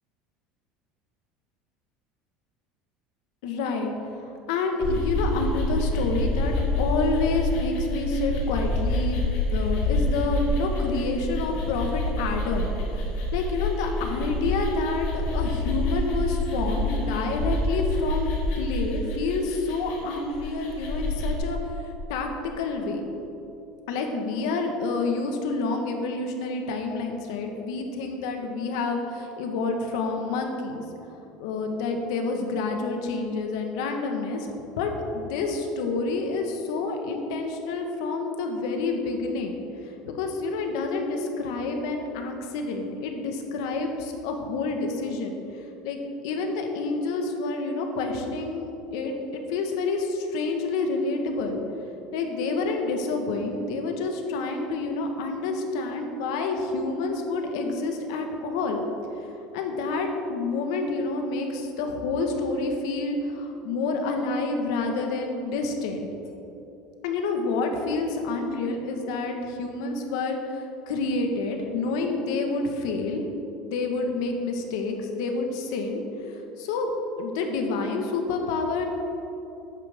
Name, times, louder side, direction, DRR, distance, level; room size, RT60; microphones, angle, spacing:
voice 1, 3.4-3.9 4.5-22.3 22.6-23.0 23.9-30.8 31.4-34.5 34.8-39.5 40.0-45.3 45.8-46.0 46.2-51.6 52.1-58.8 59.5-66.3 67.0-73.2 73.6-76.0 76.3-76.9 77.2-78.9, left 3 dB, 85° left, 3 dB, 1.4 m, -28 dB
sound 1, 4.8-21.4, left 1 dB, 65° left, 2.5 m, -27 dB
13.0 x 9.1 x 3.6 m, 3.0 s
cardioid pair, 155°, 2 cm